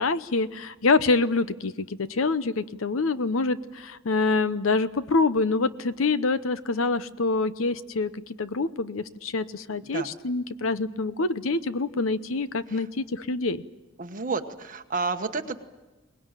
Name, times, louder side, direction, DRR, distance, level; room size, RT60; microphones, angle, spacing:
voice 1, 0.0-13.6, left 3 dB, 75° left, 14 dB, 0.8 m, -26 dB
voice 2, 14.0-15.6, right 4 dB, 40° right, 7 dB, 1.3 m, -30 dB
22.5 x 20.0 x 9.1 m, 1.1 s
head